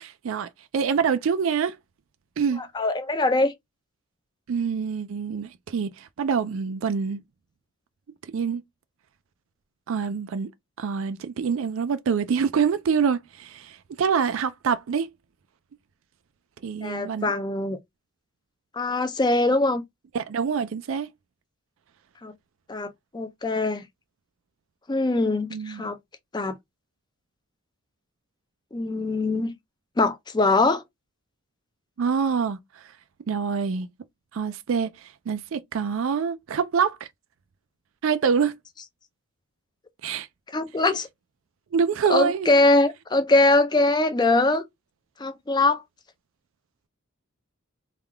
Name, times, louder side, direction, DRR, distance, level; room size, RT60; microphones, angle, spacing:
voice 1, 0.0-1.8 2.4-2.6 4.5-7.2 8.3-8.6 9.9-10.5 10.8-15.1 16.6-17.3 20.1-21.1 25.5-25.9 32.0-32.9 33.3-33.9 34.3-37.1 38.0-38.6 40.0-40.3 41.7-42.6, right 6 dB, 65° right, 0.4 m, -26 dB
voice 2, 2.7-3.5 16.8-17.8 18.7-19.8 22.2-22.3 22.7-23.8 24.9-26.0 26.3-26.5 28.7-29.5 30.0-30.8 40.5-41.1 42.1-44.7 45.2-45.8, left 2 dB, 20° left, 0.4 m, -22 dB
3.5 x 2.3 x 3.3 m
head